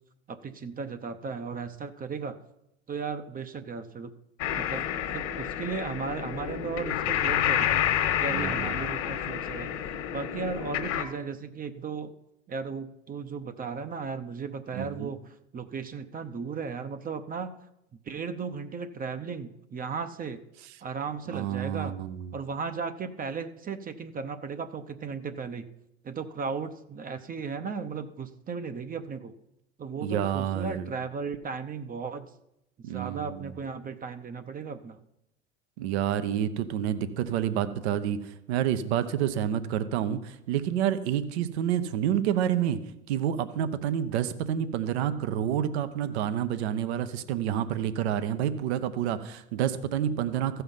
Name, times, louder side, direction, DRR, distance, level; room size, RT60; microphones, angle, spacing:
voice 1, 0.3-2.4 2.9-4.2 4.5-4.8 5.1-7.8 8.2-12.1 12.5-17.6 18.1-20.4 20.8-22.0 22.3-25.7 26.0-29.3 29.8-32.3 32.9-35.0, right 5 dB, 25° right, 9 dB, 0.7 m, -36 dB
sound 1, 4.4-11.0, left 10 dB, 50° left, 1.5 m, -29 dB
voice 2, 8.3-8.7 14.7-15.1 21.3-22.3 30.0-30.9 32.8-33.4 35.8-42.8 43.1-50.6, right 10 dB, 65° right, 12 dB, 0.9 m, -29 dB
15.0 x 5.7 x 5.5 m, 0.82 s
hypercardioid pair, 75°, 35 cm